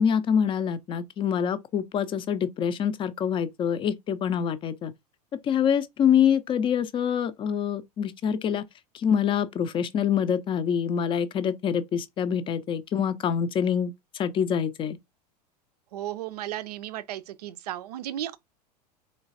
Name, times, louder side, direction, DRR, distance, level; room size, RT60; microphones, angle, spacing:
voice 1, 0.0-4.9 5.4-8.6 8.9-15.0, left 8 dB, 25° left, 0.5 m, -25 dB
voice 2, 15.9-18.4, right 12 dB, 70° right, 0.4 m, -34 dB
3.8 x 3.1 x 2.5 m
figure-of-eight pair, 85°, 21 cm